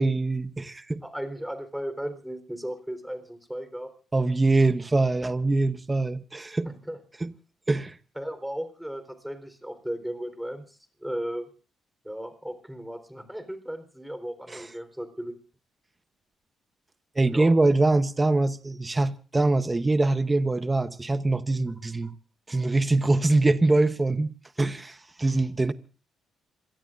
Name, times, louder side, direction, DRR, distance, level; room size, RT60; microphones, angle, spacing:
voice 1, 0.0-1.0 4.1-6.7 7.2-7.3 7.7-8.0 14.5-14.7 17.1-22.1 22.5-25.7, right 2 dB, 20° right, 0.9 m, -23 dB
voice 2, 1.0-3.9 6.6-7.0 8.2-11.5 12.0-15.4 17.3-17.6, equal, 5° right, 3.7 m, -35 dB
27.5 x 18.0 x 2.5 m
cardioid pair, 90°, 0 cm